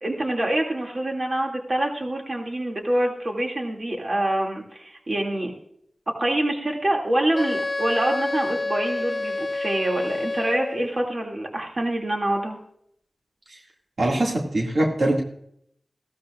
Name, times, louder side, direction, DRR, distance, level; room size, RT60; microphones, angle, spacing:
voice 1, 0.0-5.5 6.2-12.6, right 1 dB, 50° right, 1 dB, 2.5 m, -26 dB
Wind instrument woodwind instrument, 7.4-10.9, left 2 dB, 45° left, 0.7 m, -28 dB
voice 2, 14.0-15.2, right 1 dB, 75° right, -1 dB, 2.3 m, -22 dB
16.5 x 13.0 x 2.5 m, 0.69 s
cardioid pair, 45°, 0 cm